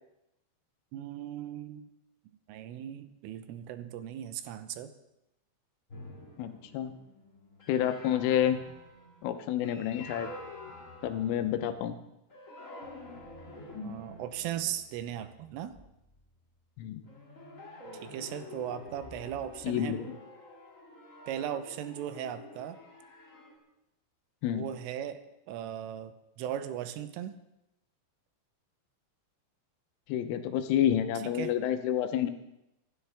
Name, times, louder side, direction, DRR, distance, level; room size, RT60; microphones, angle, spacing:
voice 1, 0.9-1.9 2.5-4.9 13.8-15.8 17.9-20.1 21.3-22.8 24.5-25.2 25.5-27.4 31.2-31.5, right 10 dB, 85° right, 11 dB, 3.5 m, -38 dB
sound 1, 5.9-11.8 12.3-16.2 17.0-23.6, left 2 dB, 30° left, 1.4 m, -48 dB
voice 2, 6.4-7.0 7.7-8.6 9.2-10.3 11.0-12.0 16.8-17.0 19.6-20.1 24.4-24.7 30.1-32.3, left 10 dB, 90° left, 8 dB, 3.5 m, -29 dB
26.0 x 12.0 x 3.5 m, 0.88 s
omnidirectional pair, 5.6 m